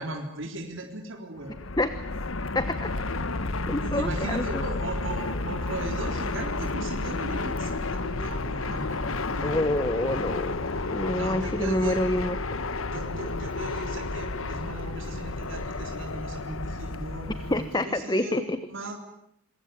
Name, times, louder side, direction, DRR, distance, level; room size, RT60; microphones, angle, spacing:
voice 1, 0.0-1.6 3.8-9.5 11.1-12.0 12.8-19.0, right 1 dB, 70° right, 2 dB, 3.8 m, -37 dB
Fixed-wing aircraft airplane, 1.4-17.8, left 3 dB, 90° left, 1.4 m, -31 dB
voice 2, 2.5-2.9 3.7-4.6 9.4-10.6 10.9-12.4 17.5-18.6, left 1 dB, 20° left, 11 dB, 1.1 m, -27 dB
26.5 x 23.0 x 9.5 m, 0.77 s
head